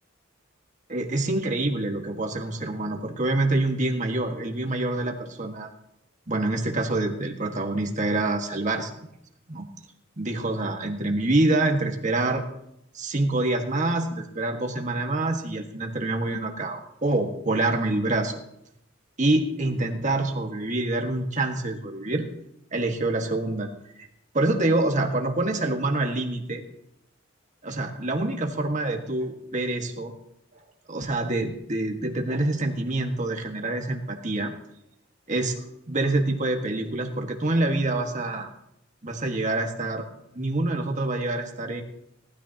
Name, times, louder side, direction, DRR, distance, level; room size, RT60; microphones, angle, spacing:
voice 1, 0.9-5.7 6.3-8.9 9.5-9.7 10.2-12.4 12.9-18.3 19.2-22.3 22.7-23.7 24.0-24.1 24.3-26.6 27.6-30.1 30.9-34.5 35.3-38.5 39.0-40.1 40.3-41.8, right 2 dB, 40° right, 3 dB, 1.7 m, -26 dB
18.5 x 13.0 x 2.9 m, 0.79 s
head